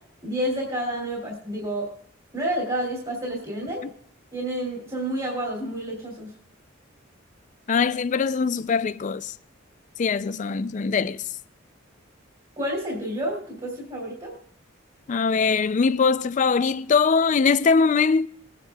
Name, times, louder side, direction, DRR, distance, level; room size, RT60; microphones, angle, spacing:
voice 1, 0.2-1.9 2.3-3.8 4.3-6.3 12.6-14.3, right 1 dB, 25° right, 2.8 m, -29 dB
voice 2, 7.7-9.3 10.0-11.2 15.1-18.3, left 5 dB, 35° left, 0.3 m, -22 dB
21.0 x 9.7 x 2.3 m
head